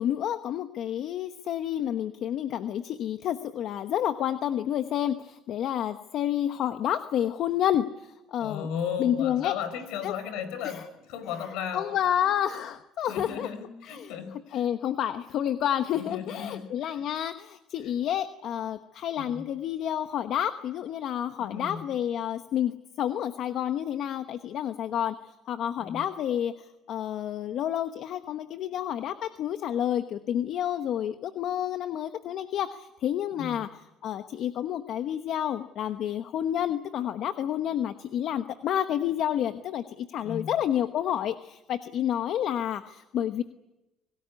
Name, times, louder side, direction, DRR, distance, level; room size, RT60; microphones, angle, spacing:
voice 1, 0.0-8.7 9.0-9.5 10.0-10.1 10.6-10.8 11.4-13.5 13.9-14.1 14.5-33.7 34.0-43.4, left 10 dB, 60° left, 9 dB, 1.1 m, -29 dB
voice 2, 8.4-11.9 13.1-14.6 15.9-17.1 17.8-17.9 19.2-19.4 21.4-21.9 25.8-26.0 33.4-33.6 40.2-40.6, left 7 dB, 85° left, 11 dB, 5.2 m, -36 dB
26.0 x 18.5 x 9.7 m, 0.98 s
cardioid pair, 110°, 0 cm